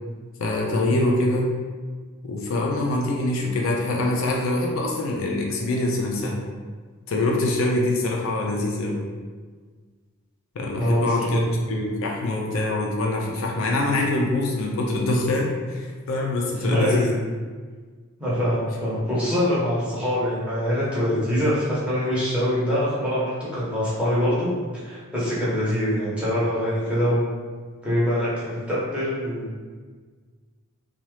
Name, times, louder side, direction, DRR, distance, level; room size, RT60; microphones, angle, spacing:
voice 1, 0.4-1.5 2.3-6.4 7.1-9.0 10.6-11.4 11.7-17.1, left 2 dB, 65° left, -1 dB, 0.4 m, -24 dB
voice 2, 10.7-11.6 16.6-17.0 18.2-24.5 24.8-27.2 27.8-29.5, equal, 5° right, -9 dB, 0.9 m, -24 dB
2.7 x 2.3 x 3.1 m, 1.5 s
head